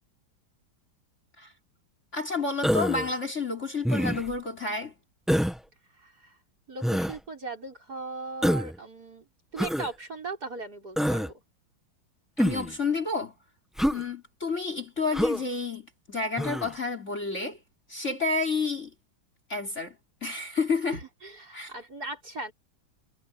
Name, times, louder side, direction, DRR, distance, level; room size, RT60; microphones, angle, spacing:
voice 1, 2.1-4.9 12.4-13.3 13.9-17.6 17.9-18.9 19.5-20.0 20.2-21.0 21.5-21.7, left 4 dB, 35° left, 3.5 m, -30 dB
Human voice, 2.6-3.1 3.8-4.4 5.3-5.6 6.8-7.2 8.4-8.8 9.6-9.9 11.0-11.3 12.4-12.7 13.8-14.0 15.1-15.4 16.4-16.7, equal, ahead, 0.9 m, -26 dB
voice 2, 6.0-6.4 6.7-11.4 20.9-22.5, right 3 dB, 45° right, 6.6 m, -39 dB
omnidirectional pair, 2.3 m